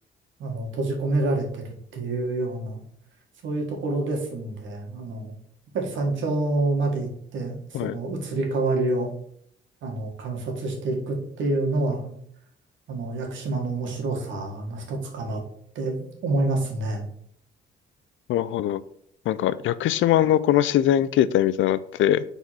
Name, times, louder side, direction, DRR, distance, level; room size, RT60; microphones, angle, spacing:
voice 1, 0.4-2.8 3.4-5.3 5.7-9.1 9.8-12.1 12.9-15.4 15.7-17.0, right 2 dB, 75° right, 1 dB, 1.8 m, -27 dB
voice 2, 18.3-18.8 19.3-22.2, left 11 dB, 75° left, 15 dB, 0.5 m, -21 dB
4.7 x 4.0 x 5.8 m, 0.66 s
cardioid pair, 90°, 20 cm